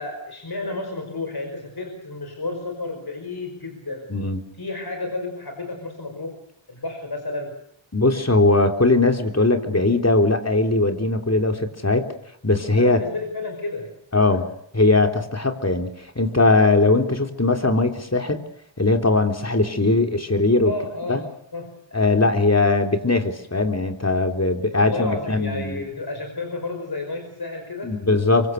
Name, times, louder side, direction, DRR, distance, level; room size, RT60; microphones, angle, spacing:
voice 1, 0.0-4.1 4.6-6.4 6.7-7.5 12.8-14.0 20.6-21.3 21.5-21.7 24.7-28.0, left 2 dB, 55° left, 4 dB, 5.5 m, -31 dB
voice 2, 4.1-4.4 7.9-12.1 12.4-13.0 14.1-14.5 14.7-18.4 18.8-20.7 21.1-21.2 21.9-25.9 27.8-28.5, left 2 dB, 35° left, 5 dB, 3.5 m, -20 dB
25.0 x 24.0 x 6.6 m, 0.72 s
cardioid pair, 45°, 46 cm